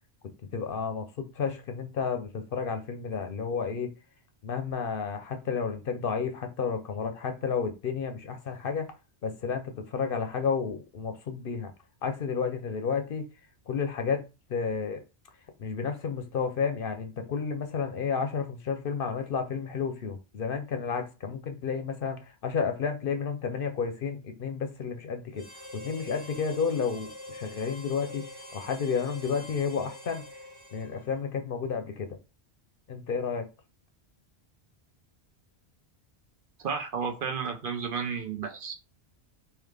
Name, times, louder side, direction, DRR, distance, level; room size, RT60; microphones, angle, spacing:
voice 1, 0.4-3.9 4.4-8.9 9.2-11.7 12.0-13.3 13.7-14.2 14.5-15.0 15.6-25.5 25.7-28.2 28.5-30.2 30.7-32.1 32.9-33.4, left 6 dB, 60° left, 0.8 m, -31 dB
Harmonica, 25.3-31.3, left 1 dB, 20° right, 0.9 m, -45 dB
voice 2, 36.6-38.8, right 6 dB, 60° right, 0.8 m, -32 dB
3.8 x 2.8 x 3.3 m
omnidirectional pair, 1.1 m